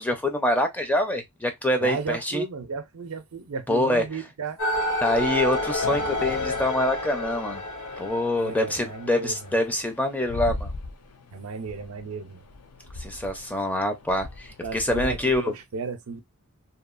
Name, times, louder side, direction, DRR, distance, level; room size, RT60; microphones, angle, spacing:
voice 1, 0.0-2.4 3.7-4.0 5.0-7.6 8.0-10.7 13.0-15.5, left 1 dB, 5° left, 0.4 m, -25 dB
voice 2, 1.8-4.6 8.4-9.4 11.3-12.4 14.6-16.2, right 4 dB, 70° right, 0.5 m, -34 dB
sound 1, 4.6-9.7, left 1 dB, 65° left, 0.9 m, -29 dB
sound 2, 5.8-15.6, left 2 dB, 80° left, 0.5 m, -40 dB
2.8 x 2.3 x 2.4 m
head